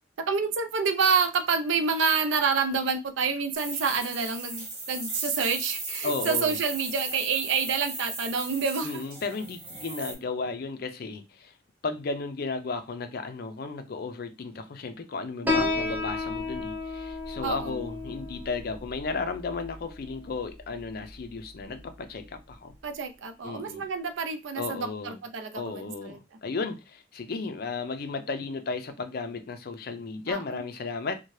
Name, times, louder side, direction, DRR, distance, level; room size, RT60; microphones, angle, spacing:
voice 1, 0.2-9.0 15.4-16.0 17.4-17.7 22.8-26.2 30.3-30.6, right 5 dB, 80° right, 0.4 m, -28 dB
sound 1, 3.5-10.1, right 2 dB, 25° right, 1.6 m, -37 dB
voice 2, 6.0-6.6 8.8-11.5 11.8-22.7 23.4-23.8 24.6-25.2 25.5-31.2, left 4 dB, 55° left, 0.4 m, -34 dB
Piano, 15.5-22.5, left 3 dB, 10° right, 0.5 m, -34 dB
2.7 x 2.2 x 3.1 m
head